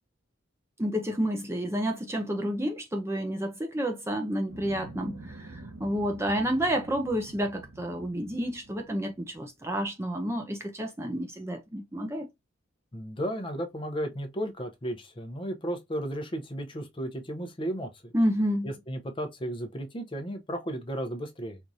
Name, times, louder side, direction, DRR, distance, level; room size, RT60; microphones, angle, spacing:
voice 1, 0.8-12.3 18.1-18.7, equal, 15° right, 0.5 m, -30 dB
sound 1, 4.5-9.5, right 2 dB, 75° right, 1.1 m, -47 dB
voice 2, 12.9-18.1 18.6-21.6, equal, 25° left, 0.7 m, -34 dB
4.5 x 2.5 x 2.6 m
head